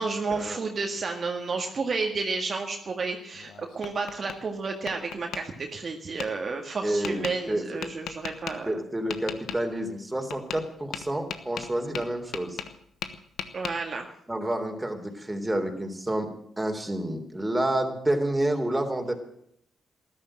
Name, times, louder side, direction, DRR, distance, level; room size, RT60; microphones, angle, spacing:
voice 1, 0.0-8.8 13.5-14.1, right 4 dB, 50° right, 2 dB, 1.9 m, -31 dB
Tap, 3.3-4.4 4.9-5.4 6.2-6.3 7.0-7.3 7.8-8.6 9.1-9.6 10.3-10.7 10.9-12.8 13.0-13.7, left 9 dB, 80° left, 1.1 m, -36 dB
voice 2, 6.8-7.6 8.7-12.6 14.3-16.3 16.6-19.1, right 1 dB, 15° right, 4 dB, 3.6 m, -29 dB
13.5 x 11.5 x 8.9 m, 0.70 s
supercardioid pair, 60°, 0 cm